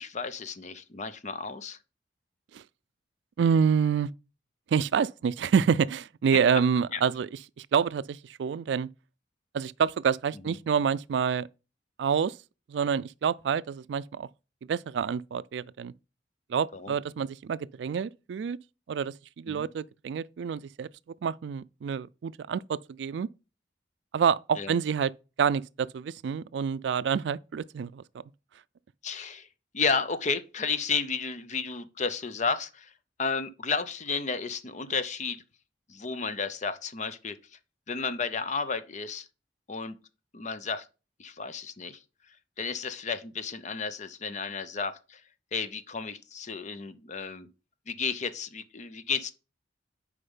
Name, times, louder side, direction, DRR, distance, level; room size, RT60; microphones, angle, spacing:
voice 1, 0.0-1.8 6.9-7.0 10.5-10.6 16.7-16.9 19.5-19.7 24.5-24.8 29.0-29.5 29.7-32.9 33.2-35.4 35.9-37.4 37.9-39.3 39.7-40.0 40.3-40.9 41.2-42.0 42.6-45.2 45.5-47.5 47.9-49.3, left 5 dB, 40° left, 0.6 m, -32 dB
voice 2, 3.4-4.1 4.7-7.3 7.6-8.9 9.5-11.5 12.0-12.4 12.7-14.3 14.7-15.9 16.5-18.6 18.9-20.9 21.2-23.3 24.1-25.1 25.4-28.0, right 7 dB, 75° right, 0.3 m, -27 dB
6.6 x 5.0 x 5.5 m
head